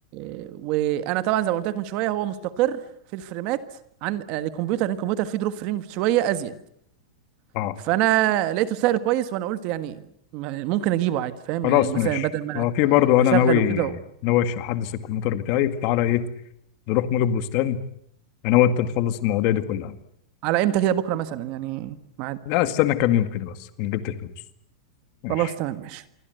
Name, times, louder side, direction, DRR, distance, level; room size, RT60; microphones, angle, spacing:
voice 1, 0.1-2.8 3.1-3.6 4.0-6.6 7.8-10.0 10.3-12.7 13.3-13.9 20.4-22.4 25.3-26.0, right 13 dB, 30° right, 13 dB, 1.5 m, -25 dB
voice 2, 11.6-12.3 12.5-13.9 14.2-16.2 16.9-17.8 18.4-19.9 22.5-24.3 25.2-25.5, left 11 dB, 30° left, 11 dB, 2.0 m, -22 dB
27.5 x 24.0 x 8.0 m, 0.70 s
supercardioid pair, 180°, 3 cm